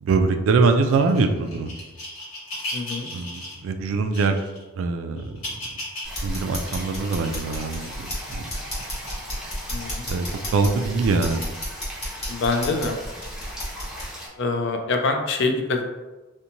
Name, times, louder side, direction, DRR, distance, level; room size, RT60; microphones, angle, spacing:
voice 1, 0.0-1.7 3.1-4.4 4.8-5.3 6.2-8.4 10.1-10.3 10.5-11.4, right 4 dB, 70° right, 6 dB, 0.3 m, -23 dB
sound 1, 0.9-3.6 4.1-4.6 5.2-6.2 6.6-11.7 12.2-12.5 13.3-13.4, left 1 dB, 80° left, 1.2 m, -37 dB
voice 2, 2.7-3.1 9.7-10.1 12.3-13.0 14.4-15.9, left 3 dB, 60° left, 4 dB, 0.4 m, -25 dB
sound 2, 6.0-14.1, equal, 35° left, 1.0 m, -33 dB
sound 3, 6.0-14.3, equal, ahead, 0.6 m, -39 dB
2.6 x 2.1 x 2.8 m, 1.1 s
head